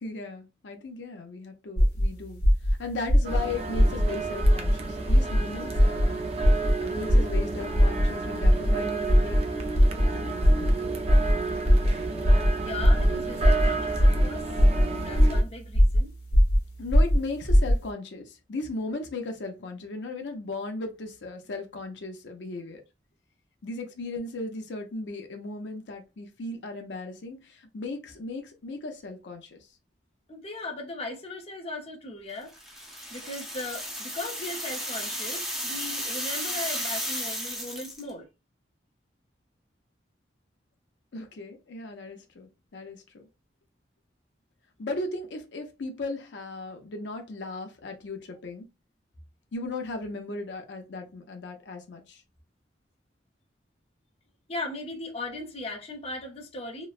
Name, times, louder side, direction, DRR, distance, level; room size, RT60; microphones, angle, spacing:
voice 1, 0.0-2.4 2.8-6.2 6.8-9.4 10.1-10.3 16.8-22.8 23.6-29.7 41.1-43.2 44.8-48.7 49.5-52.2, left 2 dB, 85° left, 0.6 m, -36 dB
sound 1, 1.8-2.0 2.4-2.7 3.1-3.4 3.7-4.0 4.4-4.7 5.1-5.4 5.7-6.0 6.4-6.7 7.1-7.4 7.7-8.1 8.4-8.7 9.1-9.4 9.7-10.0 10.4-10.7 11.1-11.3 11.6-11.9 12.2-12.5 12.8-13.1 13.4-13.6 14.0-14.2 14.5-14.8 15.1-15.4 15.7-16.0 16.3-16.6 16.9-17.2 17.5-17.7, equal, 60° left, 1.1 m, -19 dB
sound 2, 3.2-15.4, right 3 dB, 35° right, 0.4 m, -32 dB
voice 2, 12.6-14.4 15.0-16.1 30.3-32.5 33.1-38.3 54.5-56.9, left 2 dB, 35° left, 0.6 m, -38 dB
sound 3, 32.5-38.1, equal, ahead, 0.7 m, -34 dB
3.0 x 2.1 x 2.3 m
head